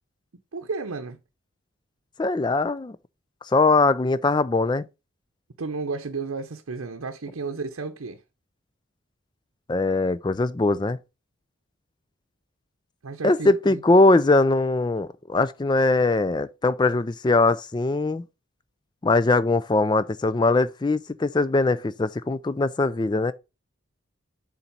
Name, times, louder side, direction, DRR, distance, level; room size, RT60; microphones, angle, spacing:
voice 1, 0.5-1.2 5.6-8.2 13.0-13.8, right 4 dB, 90° right, 0.7 m, -32 dB
voice 2, 2.2-3.0 3.5-4.9 9.7-11.0 13.2-18.2 19.0-23.3, left 2 dB, 20° left, 0.3 m, -21 dB
7.1 x 4.0 x 5.3 m
head